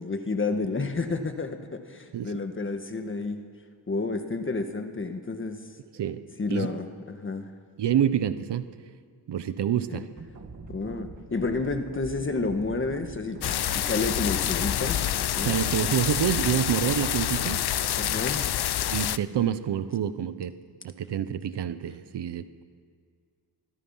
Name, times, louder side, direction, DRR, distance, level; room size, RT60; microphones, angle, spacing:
voice 1, 0.0-3.4 3.9-5.6 6.4-7.5 9.9-10.0 10.7-15.6 18.0-18.5, left 3 dB, 30° left, 6 dB, 1.6 m, -30 dB
voice 2, 7.8-8.7 9.3-10.1 15.4-17.6 18.9-20.5 20.8-22.6, right 10 dB, 85° right, 11 dB, 1.2 m, -27 dB
sound 1, 10.2-18.2, right 4 dB, 45° right, 2.1 m, -43 dB
sound 2, 13.4-19.2, left 12 dB, 70° left, 0.7 m, -27 dB
24.5 x 24.0 x 5.8 m, 2.1 s
wide cardioid pair, 125°, 40 cm